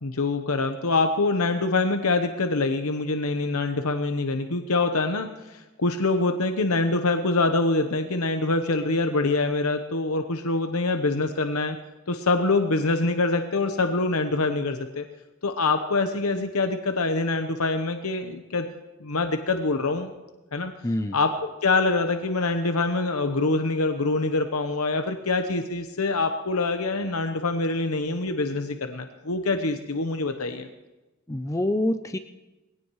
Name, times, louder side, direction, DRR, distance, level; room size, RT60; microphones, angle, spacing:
voice 1, 0.0-11.8 12.1-15.0 15.4-18.7 19.0-20.1 20.5-20.7 21.1-21.3 21.6-30.7, left 3 dB, 90° left, 6 dB, 1.0 m, -25 dB
voice 2, 20.8-21.1 31.3-32.2, left 1 dB, 15° left, 8 dB, 0.5 m, -26 dB
22.0 x 17.0 x 3.2 m, 1.1 s
head